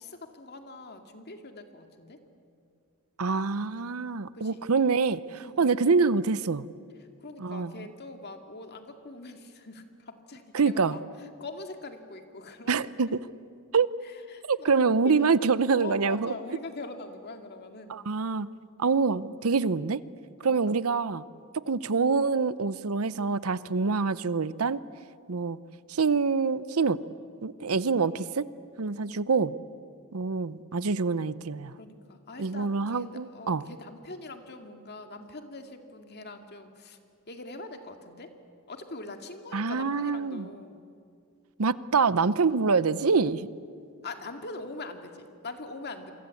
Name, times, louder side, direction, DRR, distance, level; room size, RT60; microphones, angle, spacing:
voice 1, 0.0-2.2 4.3-4.6 5.4-5.8 7.2-13.1 14.0-18.0 20.4-20.6 27.7-28.3 29.1-29.3 31.8-37.0 37.3-38.3 38.7-40.9 44.0-46.1, left 2 dB, 50° left, 5 dB, 2.3 m, -43 dB
voice 2, 3.2-6.7 7.4-7.7 10.5-11.0 12.7-13.2 13.7-13.9 14.5-16.3 17.9-18.5 18.8-20.0 20.4-21.2 21.7-24.8 25.3-25.6 25.9-27.0 27.4-28.4 28.8-29.5 30.1-31.7 32.4-33.6 39.5-40.5 41.6-43.5, right 4 dB, 80° right, 16 dB, 0.7 m, -25 dB
28.5 x 24.0 x 8.4 m, 2.3 s
head